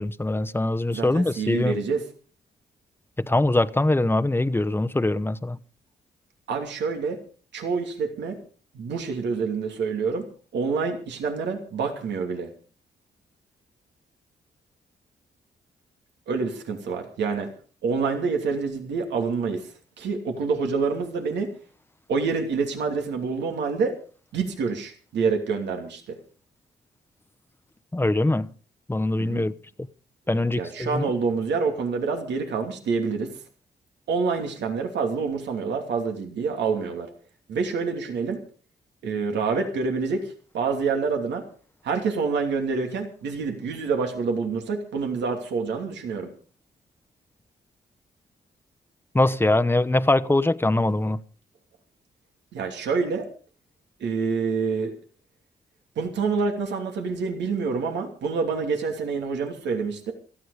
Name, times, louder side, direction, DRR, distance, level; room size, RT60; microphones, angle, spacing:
voice 1, 0.0-1.8 3.2-5.6 27.9-28.5 28.9-29.5 30.3-31.0 49.1-51.2, left 2 dB, 10° left, 1.0 m, -22 dB
voice 2, 0.9-2.0 6.5-7.2 7.5-8.4 8.7-10.3 10.5-12.5 16.3-17.5 17.8-21.5 22.1-24.0 24.3-26.2 29.2-29.5 30.3-33.3 34.1-37.1 37.5-38.4 39.0-41.4 41.8-46.3 52.5-53.3 54.0-54.9 56.0-60.1, right 5 dB, 85° right, 2.8 m, -27 dB
17.5 x 14.0 x 5.0 m
cardioid pair, 60°, 18 cm